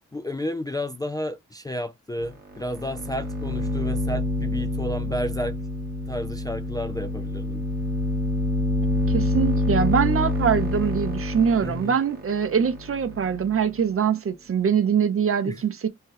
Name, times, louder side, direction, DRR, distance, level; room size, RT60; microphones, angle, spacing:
voice 1, 0.1-5.6 6.1-7.7 11.6-12.0 15.4-15.6, left 1 dB, 15° left, 0.3 m, -31 dB
sound 1, 2.2-2.3 2.6-13.7, left 2 dB, 30° right, 0.9 m, -27 dB
voice 2, 9.1-15.9, right 7 dB, 45° right, 0.6 m, -23 dB
2.7 x 2.2 x 3.2 m
wide cardioid pair, 110°, 30 cm